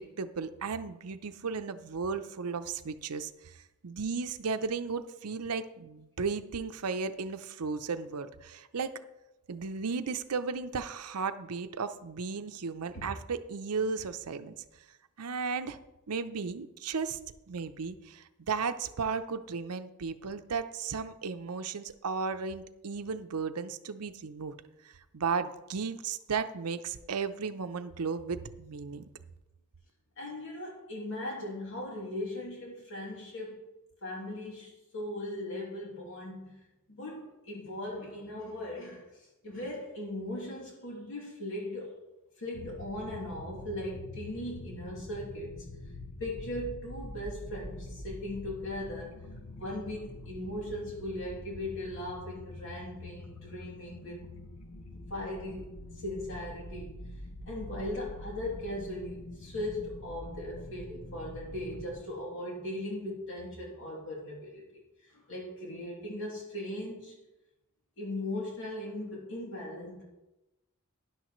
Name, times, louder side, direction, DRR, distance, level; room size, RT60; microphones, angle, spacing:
voice 1, 0.0-3.6 3.8-8.9 9.5-14.6 15.2-15.8 16.1-17.2 17.5-24.5 25.1-29.0, right 5 dB, 85° right, 9 dB, 0.6 m, -35 dB
voice 2, 30.2-33.6 34.0-36.6 36.9-42.0 42.4-45.6 46.2-49.2 49.5-54.2 54.9-57.0 57.5-67.2 68.0-70.0, left 1 dB, 60° left, -4 dB, 2.9 m, -39 dB
sound 1, 42.5-61.9, left 1 dB, 80° left, 1.0 m, -45 dB
12.5 x 11.0 x 3.1 m, 0.97 s
head